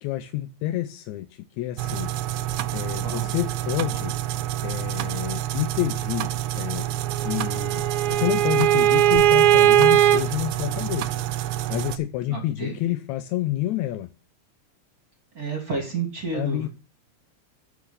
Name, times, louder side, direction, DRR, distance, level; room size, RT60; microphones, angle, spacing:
voice 1, 0.0-2.1 2.7-4.2 4.6-6.9 7.1-11.1 11.7-14.1 16.3-16.7, left 14 dB, 85° left, 9 dB, 2.0 m, -29 dB
sound 1, 1.8-12.0, right 13 dB, 85° right, 2.0 m, -28 dB
Bowed string instrument, 7.1-10.2, right 11 dB, 65° right, 1.7 m, -19 dB
voice 2, 12.3-12.7 15.3-16.7, right 4 dB, 35° right, 1 dB, 2.0 m, -30 dB
7.8 x 5.8 x 6.7 m, 0.32 s
omnidirectional pair, 3.3 m